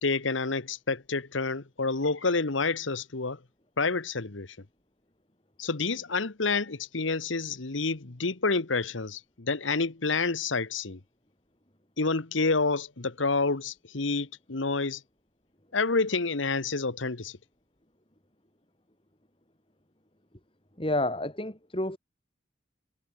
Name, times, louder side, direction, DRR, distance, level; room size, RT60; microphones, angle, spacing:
voice 1, 0.0-3.4 3.8-4.6 5.6-11.0 12.0-15.0 15.7-17.4, left 3 dB, 90° left, 1.4 m, -28 dB
voice 2, 20.8-22.0, left 1 dB, 30° left, 4.6 m, -29 dB
head